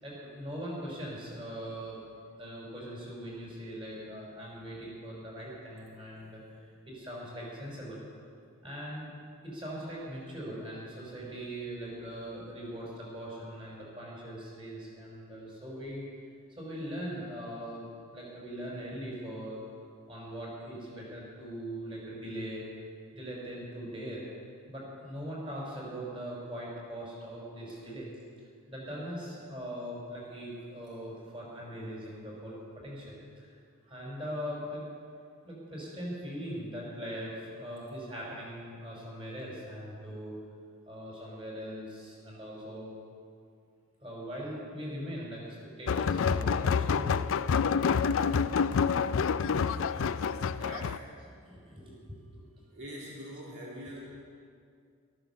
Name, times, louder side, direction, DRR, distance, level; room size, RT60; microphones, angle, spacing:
voice 1, 0.0-2.0 2.4-6.4 6.9-8.0 8.6-9.1 9.4-16.0 16.6-17.9 18.1-19.6 20.1-22.6 23.1-24.2 24.7-28.1 28.7-33.5 33.8-34.8 35.4-40.3 40.9-42.9 44.0-47.2 50.2-50.3 51.1-52.4 54.0-54.1, equal, 25° right, -4 dB, 4.8 m, -41 dB
sound 1, 45.9-51.0, left 6 dB, 60° left, 0.4 m, -27 dB
voice 2, 49.9-51.1 52.7-54.1, equal, 55° right, -4 dB, 1.9 m, -45 dB
13.5 x 13.5 x 6.9 m, 2.3 s
head